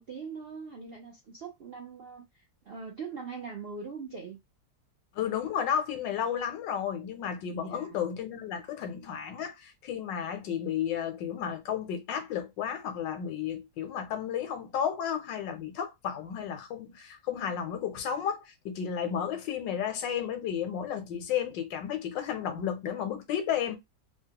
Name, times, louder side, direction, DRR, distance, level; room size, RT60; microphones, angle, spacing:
voice 1, 0.0-4.4 7.5-8.0, right 5 dB, 65° right, 0.5 m, -42 dB
voice 2, 5.1-23.8, left 8 dB, 75° left, 1.4 m, -33 dB
3.4 x 2.1 x 2.8 m
omnidirectional pair, 2.0 m